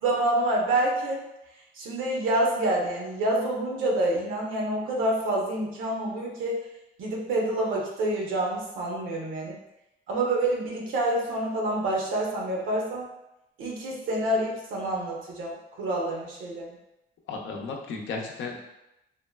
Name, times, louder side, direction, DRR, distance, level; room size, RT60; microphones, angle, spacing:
voice 1, 0.0-1.2 1.7-6.6 7.0-9.6 10.1-13.1 13.6-16.7, right 1 dB, 80° right, -2 dB, 0.8 m, -27 dB
voice 2, 17.3-18.6, left 4 dB, 75° left, 1 dB, 0.6 m, -34 dB
3.6 x 2.1 x 2.2 m, 0.90 s
cardioid pair, 90°, 20 cm